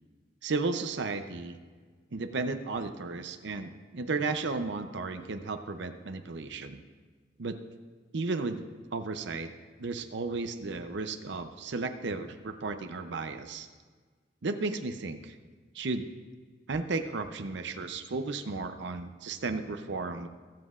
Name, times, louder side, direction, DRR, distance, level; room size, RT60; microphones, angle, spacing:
voice 1, 0.4-1.6 2.1-6.8 7.4-7.6 8.1-8.6 8.9-9.5 9.8-13.7 14.4-15.4 15.7-16.1 16.7-20.3, right 3 dB, 70° right, 8 dB, 0.6 m, -34 dB
22.0 x 7.5 x 2.5 m, 1.5 s
head